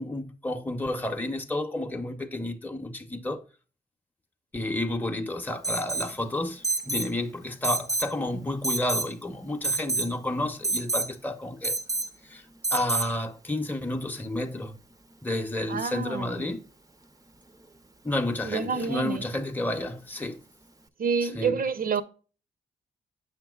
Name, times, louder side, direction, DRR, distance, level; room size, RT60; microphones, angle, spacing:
voice 1, 0.0-3.4 4.5-11.8 12.2-12.4 12.7-14.8 15.2-16.6 18.0-20.4 21.2-21.6, left 1 dB, 10° left, 0.9 m, -31 dB
Alarm, 5.6-6.1 6.6-7.1 7.6-8.1 8.6-9.1 9.6-10.1 10.6-11.1 11.6-12.1 12.6-13.1, right 3 dB, 20° right, 0.7 m, -28 dB
voice 2, 15.7-16.4 18.4-19.3 21.0-22.0, right 5 dB, 55° right, 0.8 m, -28 dB
7.5 x 5.9 x 2.3 m
supercardioid pair, 50°, 17 cm